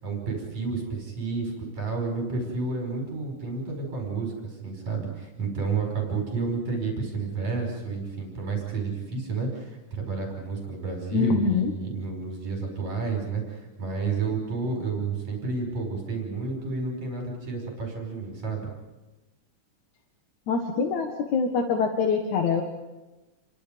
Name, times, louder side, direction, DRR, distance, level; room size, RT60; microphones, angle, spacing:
voice 1, 0.0-18.6, right 4 dB, 60° right, 1 dB, 6.5 m, -30 dB
voice 2, 11.1-11.7 20.5-22.6, left 5 dB, 70° left, 3 dB, 3.0 m, -24 dB
29.0 x 24.0 x 5.2 m, 1.1 s
omnidirectional pair, 3.6 m